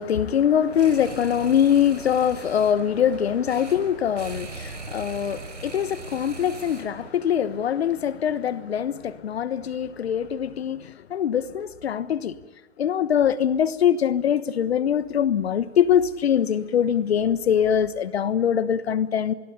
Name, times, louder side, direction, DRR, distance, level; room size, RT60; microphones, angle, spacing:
voice 1, 0.0-12.4 12.8-19.3, left 9 dB, 60° left, 1.3 m, -23 dB
sound 1, 0.6-7.1, right 3 dB, 85° right, 5.3 m, -40 dB
26.0 x 21.5 x 7.2 m
figure-of-eight pair, 120°, 35 cm